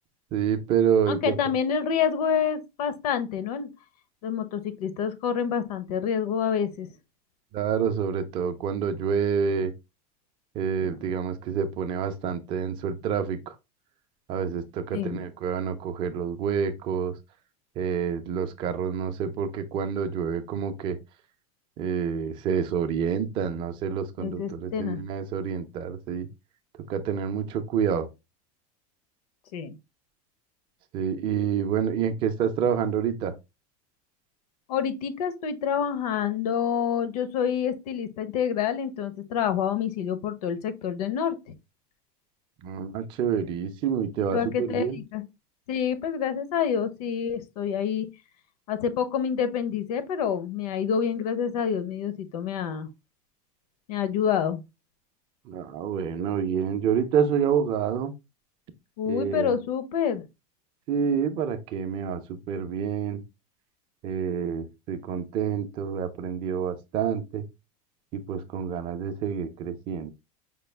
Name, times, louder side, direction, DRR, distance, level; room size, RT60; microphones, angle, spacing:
voice 1, 0.3-1.4 7.5-9.7 10.5-13.5 14.3-17.1 17.8-21.0 21.8-26.3 26.9-28.1 30.9-33.3 42.6-45.0 55.5-58.1 59.1-59.5 60.9-63.2 64.0-67.4 68.1-70.1, right 7 dB, 25° right, 0.4 m, -28 dB
voice 2, 1.1-3.7 4.2-6.9 10.8-11.0 14.9-15.2 24.2-25.0 29.5-29.8 34.7-41.4 44.3-45.2 45.7-48.1 48.7-52.9 53.9-54.6 59.0-60.3, left 7 dB, 85° left, 0.8 m, -27 dB
5.1 x 2.3 x 3.3 m
supercardioid pair, 180°, 19 cm